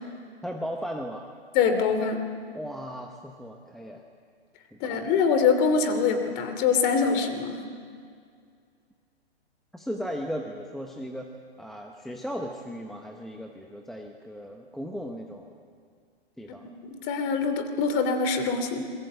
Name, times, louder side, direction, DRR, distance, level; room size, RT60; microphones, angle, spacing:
voice 1, 0.4-1.3 2.5-4.0 4.7-5.1 9.7-11.3 11.6-15.5 16.4-16.7, equal, ahead, 2 dB, 0.8 m, -36 dB
voice 2, 1.5-2.2 4.8-7.6 16.8-18.9, left 5 dB, 30° left, 8 dB, 2.8 m, -24 dB
27.5 x 23.0 x 8.1 m, 2.2 s
hypercardioid pair, 150°, 33 cm